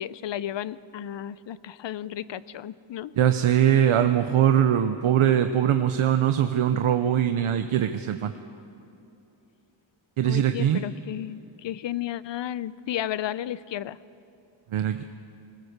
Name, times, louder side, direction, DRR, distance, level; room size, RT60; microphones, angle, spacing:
voice 1, 0.0-3.1 10.2-14.0, left 11 dB, 65° left, 17 dB, 0.6 m, -33 dB
voice 2, 3.2-8.3 10.2-10.8 14.7-15.0, right 10 dB, 85° right, 8 dB, 0.8 m, -22 dB
21.5 x 19.0 x 6.6 m, 2.8 s
wide cardioid pair, 115°, 48 cm